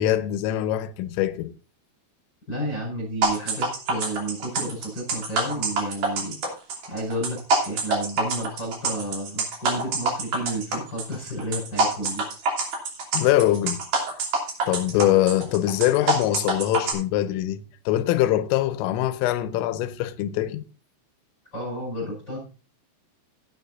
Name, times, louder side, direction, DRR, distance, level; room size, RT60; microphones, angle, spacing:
voice 1, 0.0-1.5 13.1-13.8 14.7-17.6 17.9-20.6, left 13 dB, 90° left, 3.3 m, -23 dB
voice 2, 2.5-6.4 6.9-12.2 21.5-22.4, right 1 dB, 20° left, 5.2 m, -31 dB
sound 1, 3.2-16.9, right 3 dB, 45° right, 3.8 m, -26 dB
15.5 x 9.8 x 2.6 m
omnidirectional pair, 5.8 m